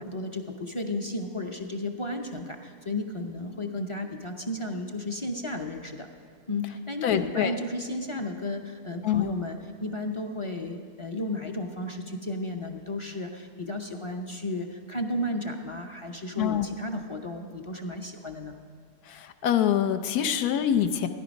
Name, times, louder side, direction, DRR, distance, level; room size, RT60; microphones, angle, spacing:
voice 1, 0.0-6.1 6.5-18.6, left 1 dB, 40° left, 4 dB, 0.4 m, -33 dB
voice 2, 7.0-7.5 9.0-9.3 16.4-16.7 19.1-21.1, left 10 dB, 85° left, 9 dB, 1.2 m, -25 dB
17.0 x 10.5 x 5.2 m, 2.1 s
omnidirectional pair, 1.6 m